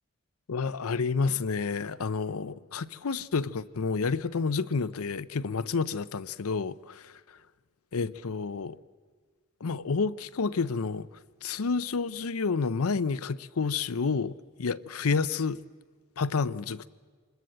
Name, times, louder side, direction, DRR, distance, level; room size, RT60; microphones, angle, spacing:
voice 1, 0.5-7.1 7.9-8.8 9.6-11.1 11.4-15.6 16.2-16.9, left 4 dB, 90° left, 0.6 m, -29 dB
25.5 x 20.5 x 7.7 m
head